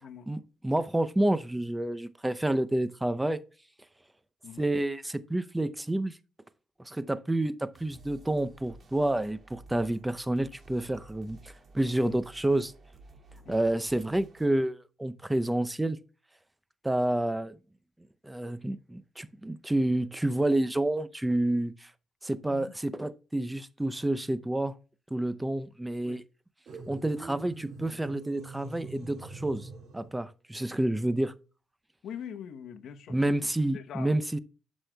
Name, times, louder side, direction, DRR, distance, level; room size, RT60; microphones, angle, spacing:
voice 1, 0.3-3.4 4.6-6.2 6.8-11.4 11.7-12.7 13.5-16.0 16.8-17.6 18.2-21.9 22.2-24.8 25.1-26.2 26.9-29.7 29.9-31.3 33.1-34.4, right 1 dB, 10° right, 0.5 m, -29 dB
sound 1, 7.7-14.5, right 2 dB, 40° right, 2.2 m, -53 dB
sound 2, 26.7-30.2, right 3 dB, 60° right, 4.6 m, -44 dB
voice 2, 32.0-33.3 33.7-34.1, left 8 dB, 70° left, 0.8 m, -42 dB
11.5 x 6.2 x 2.2 m
cardioid pair, 90°, 0 cm